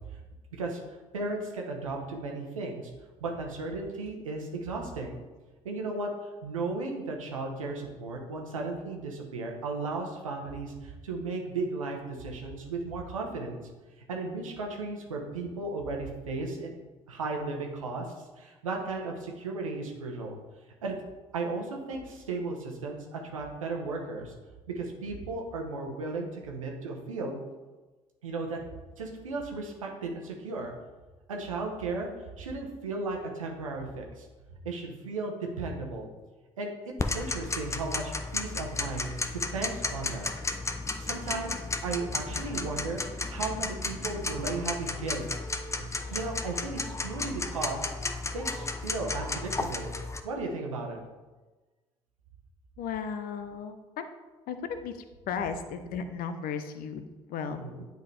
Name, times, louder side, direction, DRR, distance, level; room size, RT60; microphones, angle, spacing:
voice 1, 0.5-2.9 3.2-5.2 5.6-6.1 6.4-13.7 14.1-16.7 17.1-18.1 18.4-20.4 20.8-21.0 21.3-24.3 24.7-27.4 28.2-28.6 29.0-30.7 31.3-32.1 32.4-36.1 36.6-36.7 37.0-40.3 41.0-43.0 43.3-45.4 46.1-47.9 48.3-49.9 50.2-51.0 57.5-57.8, right 3 dB, 90° right, 1 dB, 0.9 m, -35 dB
Tick-tock, 37.0-50.2, left 3 dB, 15° left, 0.6 m, -33 dB
voice 2, 52.8-54.1 54.5-54.9 55.3-57.6, left 6 dB, 60° left, 9 dB, 0.7 m, -35 dB
9.4 x 4.0 x 3.2 m, 1.2 s
hypercardioid pair, 50°, 17 cm